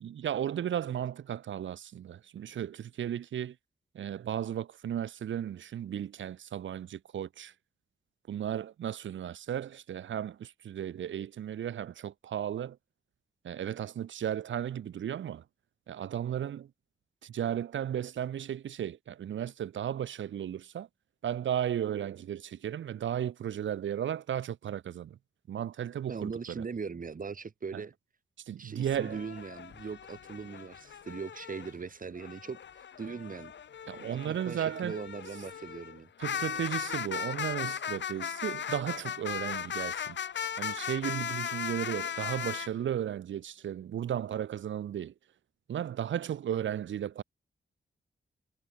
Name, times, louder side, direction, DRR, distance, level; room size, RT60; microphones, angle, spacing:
voice 1, 0.0-3.6 3.9-7.5 8.3-12.8 13.4-15.4 15.9-16.7 17.2-20.9 21.2-25.2 25.5-26.6 27.7-27.8 28.5-29.2 33.9-35.0 36.2-40.2 40.6-45.1 45.7-47.2, right 10 dB, 85° right, 0.7 m, -35 dB
voice 2, 26.1-27.9 28.6-32.6 33.0-33.5 34.0-36.1, right 5 dB, 45° right, 1.5 m, -40 dB
sound 1, 28.8-31.7 32.2-42.7, left 8 dB, 75° left, 1.0 m, -37 dB
wide cardioid pair, 100°, 19 cm